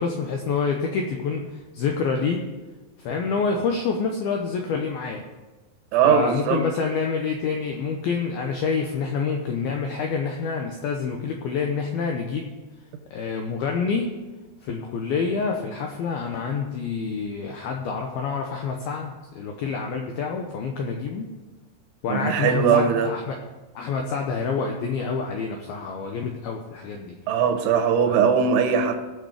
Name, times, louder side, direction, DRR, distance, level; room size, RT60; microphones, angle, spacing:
voice 1, 0.0-2.4 3.0-5.2 6.0-12.6 13.1-14.2 14.6-21.3 22.0-23.4 23.8-27.2 28.1-28.2, left 5 dB, 80° left, 2 dB, 2.2 m, -27 dB
voice 2, 5.9-6.6 22.1-23.1 27.3-29.0, right 7 dB, 80° right, 6 dB, 3.3 m, -20 dB
18.5 x 6.5 x 5.0 m, 1.2 s
omnidirectional pair, 5.5 m